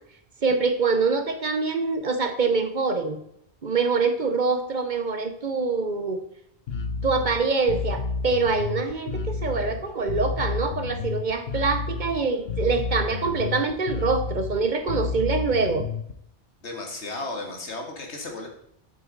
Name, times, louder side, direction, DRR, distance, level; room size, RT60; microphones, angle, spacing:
voice 1, 0.4-3.2 3.6-6.2 7.0-15.9, right 4 dB, 45° right, 7 dB, 1.0 m, -25 dB
Bass guitar, 6.7-16.1, left 4 dB, 65° left, 1.0 m, -31 dB
voice 2, 16.6-18.5, left 2 dB, 90° left, 2 dB, 2.1 m, -34 dB
8.2 x 8.0 x 3.9 m, 0.74 s
omnidirectional pair, 1.1 m